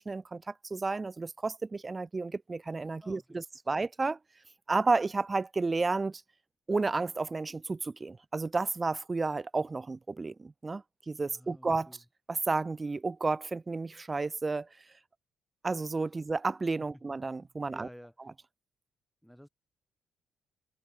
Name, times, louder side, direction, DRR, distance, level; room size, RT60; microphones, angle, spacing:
voice 1, 0.0-4.2 4.7-6.2 6.7-11.9 12.3-14.7 15.6-17.9, right 3 dB, 25° right, 0.5 m, -32 dB
voice 2, 3.0-3.8 11.3-12.0 16.9-17.0 17.7-18.1 19.2-19.5, equal, ahead, 4.9 m, -52 dB
cardioid pair, 90°, 0 cm